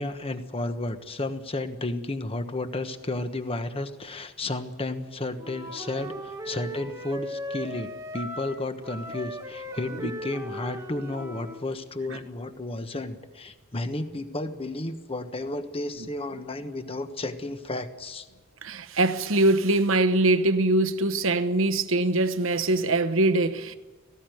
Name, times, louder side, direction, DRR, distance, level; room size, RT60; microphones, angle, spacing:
voice 1, 0.0-18.3, left 2 dB, 25° left, 1.3 m, -32 dB
Wind instrument woodwind instrument, 5.4-11.6, equal, 15° right, 1.6 m, -38 dB
voice 2, 18.6-23.7, right 2 dB, 65° right, 1.1 m, -23 dB
18.5 x 16.5 x 9.3 m
head